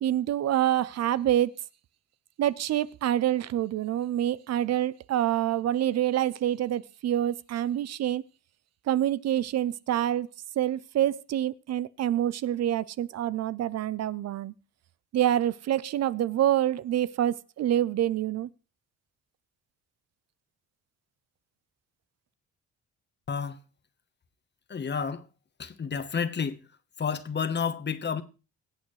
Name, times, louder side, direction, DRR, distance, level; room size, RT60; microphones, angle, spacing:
voice 1, 0.0-1.5 2.4-8.2 8.9-10.3 10.6-14.5 15.1-18.5, right 12 dB, 60° right, 0.5 m, -26 dB
voice 2, 23.3-23.6 24.7-25.2 25.6-26.6 27.0-28.2, left 6 dB, 35° left, 1.2 m, -30 dB
21.5 x 8.1 x 3.2 m
cardioid pair, 90°, 30 cm